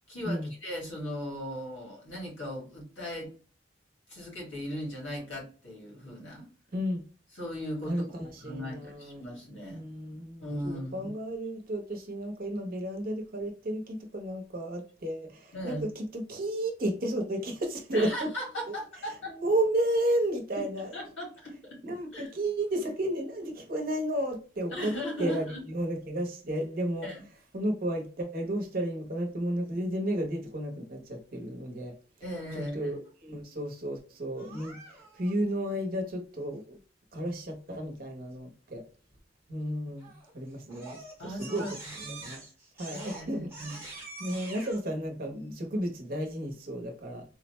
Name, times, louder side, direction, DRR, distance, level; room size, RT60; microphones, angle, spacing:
voice 1, 0.1-3.3 4.1-6.4 7.3-9.8 10.4-11.1 15.5-15.8 17.9-19.4 20.6-21.8 22.1-22.3 24.7-25.7 27.0-27.2 32.2-33.0 41.2-41.7 42.0-42.3 42.9-43.8, equal, 90° left, 1.8 m, -38 dB
voice 2, 6.7-7.0 7.9-9.2 9.7-18.3 18.7-18.8 19.3-20.9 21.8-24.9 25.2-27.1 27.5-31.9 32.6-36.8 37.1-38.8 39.5-41.6 42.0-42.4 42.8-43.5 44.2-47.2, right 1 dB, 50° right, 0.8 m, -32 dB
Crying sobbing, 34.4-35.3 40.0-40.3 40.7-44.8, right 3 dB, 15° right, 0.9 m, -45 dB
3.8 x 2.1 x 3.0 m
head